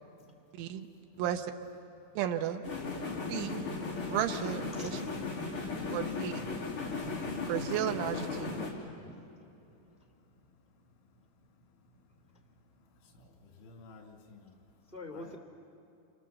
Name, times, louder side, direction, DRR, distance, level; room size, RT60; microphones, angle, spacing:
voice 1, 0.5-0.9 1.2-1.5 2.2-2.6 3.3-3.6 4.1-5.0 5.9-6.3 7.5-8.7, right 10 dB, 80° right, 6 dB, 3.5 m, -33 dB
sound 1, 2.6-8.7, left 4 dB, 30° left, 3.7 m, -36 dB
voice 2, 5.5-6.0 9.0-9.2 14.9-15.4, left 2 dB, 5° right, 3 dB, 1.3 m, -45 dB
voice 3, 13.0-14.5 15.1-15.4, left 4 dB, 90° left, 2 dB, 5.2 m, -54 dB
29.0 x 28.0 x 7.3 m, 2.7 s
omnidirectional pair, 5.4 m